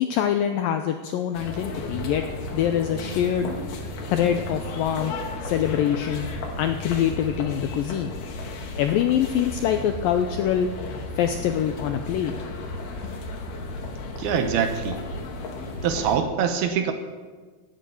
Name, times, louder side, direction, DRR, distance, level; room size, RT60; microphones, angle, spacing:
voice 1, 0.0-2.2 2.5-3.5 4.1-5.1 5.4-6.3 6.6-8.1 8.8-10.7 11.2-12.3 13.0-13.1, left 9 dB, 85° left, 7 dB, 2.0 m, -24 dB
sound 1, 1.3-16.2, left 2 dB, 70° left, 3.5 m, -34 dB
voice 2, 14.2-15.0 15.8-16.9, right 7 dB, 75° right, 7 dB, 2.6 m, -24 dB
17.5 x 9.4 x 7.1 m, 1.4 s
omnidirectional pair, 4.9 m